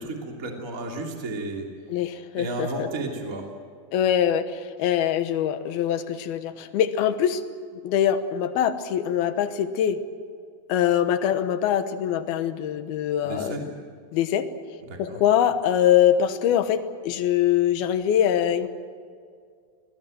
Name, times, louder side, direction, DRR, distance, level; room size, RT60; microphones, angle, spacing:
voice 1, 0.0-1.7 2.3-3.5 13.2-13.6 14.9-15.2, right 2 dB, 25° right, 0 dB, 2.8 m, -32 dB
voice 2, 1.9-2.9 3.9-7.4 7.8-10.0 10.7-13.6 14.1-14.5 15.0-18.7, left 10 dB, 85° left, 10 dB, 3.1 m, -23 dB
26.5 x 19.0 x 7.8 m, 2.1 s
omnidirectional pair, 4.3 m